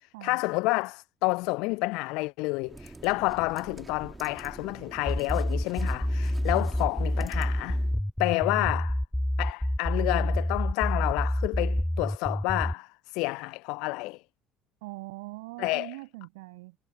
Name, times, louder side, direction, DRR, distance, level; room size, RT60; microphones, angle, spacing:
voice 1, 0.0-7.8 8.2-9.0 9.4-14.2 15.6-16.0, left 25 dB, 60° left, 0.8 m, -29 dB
sound 1, 2.6-8.0, right 2 dB, 15° right, 2.5 m, -46 dB
sound 2, 5.1-12.7, left 1 dB, 5° left, 0.5 m, -27 dB
voice 2, 14.8-16.8, right 24 dB, 65° right, 7.7 m, -42 dB
figure-of-eight pair, 60°, 0 cm